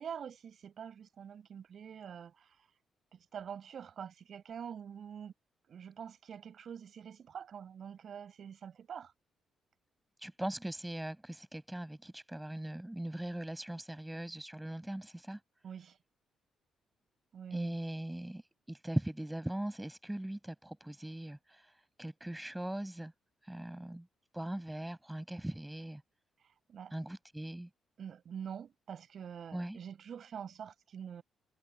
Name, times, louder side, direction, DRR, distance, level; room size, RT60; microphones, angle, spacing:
voice 1, 0.0-2.7 3.1-5.3 5.7-9.1 15.6-16.0 17.3-17.8 26.4-26.9 28.0-31.2, right 8 dB, 55° right, 6.1 m, -46 dB
voice 2, 10.2-15.4 17.5-18.4 18.7-23.1 23.4-24.1 24.3-26.0 26.9-27.7 29.5-29.8, right 1 dB, 5° right, 5.5 m, -40 dB
cardioid pair, 115°, 0 cm